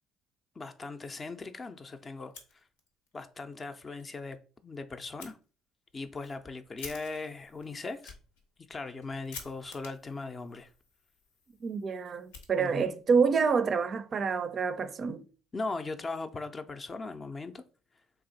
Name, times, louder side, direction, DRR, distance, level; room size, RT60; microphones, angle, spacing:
voice 1, 0.6-2.3 3.1-5.4 5.9-8.2 8.7-10.7 12.6-13.0 15.5-17.6, left 3 dB, 30° left, 0.5 m, -39 dB
Fire, 2.2-3.1 3.4-3.5 4.0-4.1 5.2-5.3 5.9-13.0, left 4 dB, 85° left, 0.7 m, -51 dB
voice 2, 11.6-15.2, right 5 dB, 45° right, 0.4 m, -27 dB
3.3 x 2.6 x 3.9 m
hypercardioid pair, 60°, 0 cm